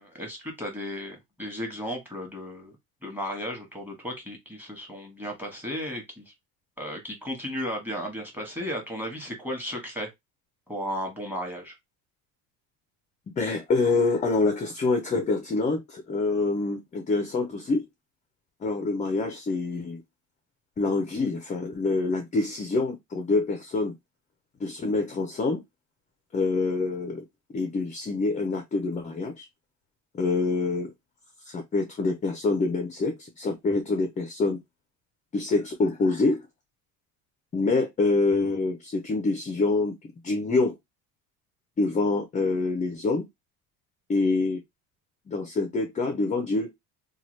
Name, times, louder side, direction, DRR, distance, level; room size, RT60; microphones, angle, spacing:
voice 1, 0.0-2.7 3.0-6.3 6.8-10.1 10.7-11.7, equal, 5° right, 1.1 m, -34 dB
voice 2, 13.4-17.8 18.6-20.0 20.8-23.9 24.6-25.6 26.3-27.2 27.5-29.5 30.2-30.9 31.5-34.6 35.3-36.4 37.5-40.8 41.8-43.2 44.1-44.6 45.3-46.7, left 3 dB, 20° left, 0.4 m, -26 dB
2.9 x 2.3 x 3.1 m
cardioid pair, 145°, 39 cm